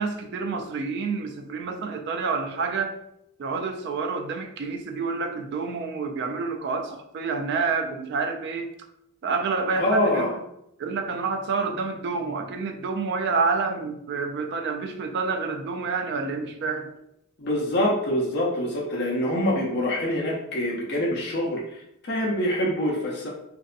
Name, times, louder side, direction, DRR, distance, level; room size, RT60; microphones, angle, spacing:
voice 1, 0.0-3.0 3.4-8.7 9.2-10.3 10.8-16.9, right 4 dB, 55° right, 5 dB, 0.3 m, -28 dB
voice 2, 9.8-10.4 17.4-23.3, left 1 dB, 50° left, -2 dB, 0.6 m, -25 dB
2.6 x 2.1 x 2.4 m, 0.78 s
head